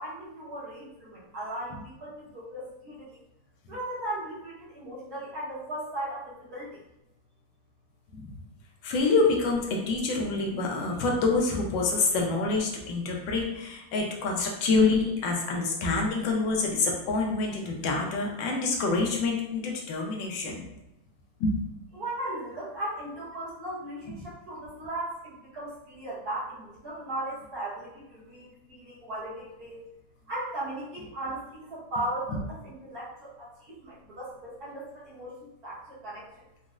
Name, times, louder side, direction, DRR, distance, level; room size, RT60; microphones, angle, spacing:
voice 1, 0.0-3.2 3.7-6.8 21.9-29.8 30.2-36.5, right 1 dB, 60° right, -8 dB, 1.4 m, -37 dB
voice 2, 8.8-20.7 21.4-21.6, left 3 dB, 80° left, 0 dB, 1.3 m, -26 dB
4.0 x 2.0 x 2.3 m, 0.92 s
omnidirectional pair, 2.0 m